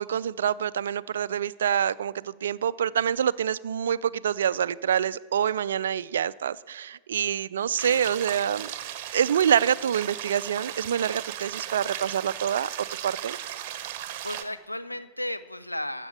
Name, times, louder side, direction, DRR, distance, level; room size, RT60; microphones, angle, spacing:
voice 1, 0.0-8.7 9.1-12.7 13.0-13.4, right 9 dB, 65° right, 19 dB, 0.3 m, -26 dB
voice 2, 7.8-8.1 14.2-16.1, left 1 dB, 85° left, 12 dB, 0.5 m, -34 dB
sound 1, 7.8-14.4, right 11 dB, 45° right, 0.8 m, -36 dB
15.0 x 6.1 x 8.0 m, 1.3 s
figure-of-eight pair, 90°, 0 cm